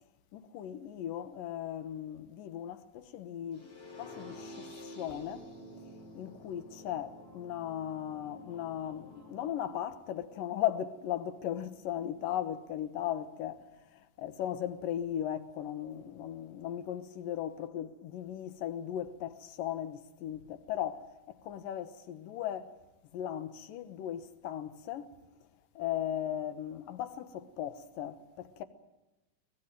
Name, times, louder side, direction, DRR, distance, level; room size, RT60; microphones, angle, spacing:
voice 1, 0.3-5.5 5.8-22.7 23.1-25.1 25.8-28.6, left 11 dB, 70° left, 2.3 m, -37 dB
sound 1, 3.5-9.5, equal, 30° left, 6.1 m, -50 dB
22.5 x 20.5 x 9.0 m
omnidirectional pair, 5.3 m